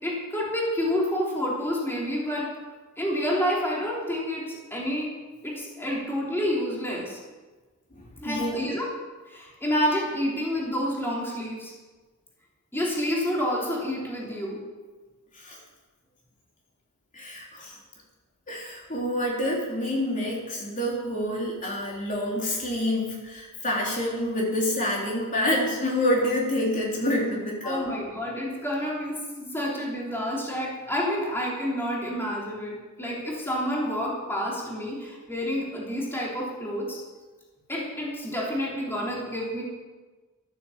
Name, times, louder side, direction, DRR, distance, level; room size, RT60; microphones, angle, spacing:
voice 1, 0.0-2.5 3.0-5.1 5.4-7.2 8.2-8.9 9.3-11.7 12.7-14.6 27.6-37.0 37.7-39.6, equal, 10° left, -4 dB, 3.5 m, -29 dB
voice 2, 7.9-8.6 15.3-15.6 17.1-17.8 18.5-28.0, left 1 dB, 35° left, -3 dB, 3.3 m, -27 dB
13.5 x 10.0 x 7.3 m, 1.3 s
head